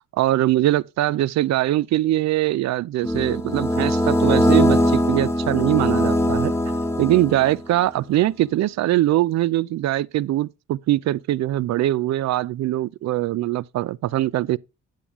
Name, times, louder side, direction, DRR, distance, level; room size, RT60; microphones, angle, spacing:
voice 1, 0.0-6.5 7.0-14.6, right 14 dB, 65° right, 0.4 m, -22 dB
sound 1, 3.0-7.7, equal, 10° left, 1.0 m, -21 dB
9.1 x 7.0 x 3.6 m
cardioid pair, 90°, 30 cm